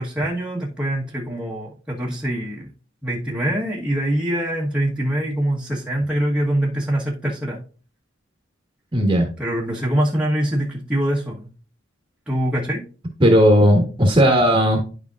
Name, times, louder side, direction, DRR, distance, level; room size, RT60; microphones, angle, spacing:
voice 1, 0.0-2.7 3.0-7.6 9.4-11.5 12.3-12.8, right 1 dB, 5° right, -5 dB, 1.2 m, -24 dB
voice 2, 8.9-9.3 13.2-14.8, equal, 25° right, 3 dB, 1.3 m, -15 dB
11.0 x 5.1 x 2.4 m, 0.37 s
head